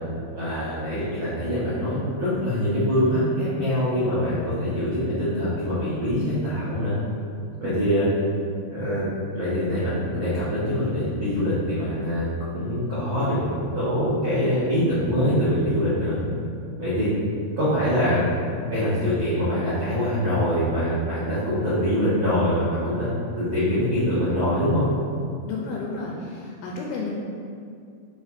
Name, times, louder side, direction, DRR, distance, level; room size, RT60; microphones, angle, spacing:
voice 1, 0.3-6.9 7.6-8.1 8.7-9.1 9.3-16.2 16.8-17.1 17.6-18.3 18.7-23.1 23.4-24.8, equal, 75° right, -12 dB, 1.1 m, -24 dB
voice 2, 25.5-27.1, left 4 dB, 80° left, -2 dB, 2.2 m, -32 dB
8.0 x 3.3 x 4.0 m, 2.3 s
omnidirectional pair, 4.7 m